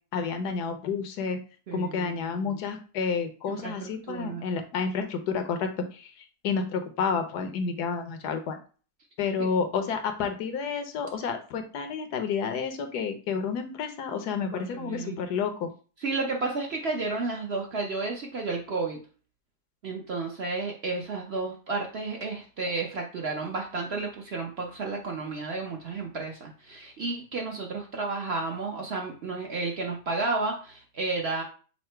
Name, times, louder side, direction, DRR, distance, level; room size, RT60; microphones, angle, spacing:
voice 1, 0.1-1.4 1.7-8.6 9.2-15.7, left 5 dB, 80° left, 7 dB, 1.3 m, -30 dB
voice 2, 1.7-2.6 3.4-4.4 14.5-15.2 16.0-19.0 19.8-31.4, right 3 dB, 55° right, 1 dB, 0.8 m, -32 dB
5.6 x 2.1 x 4.4 m, 0.38 s
omnidirectional pair, 1.7 m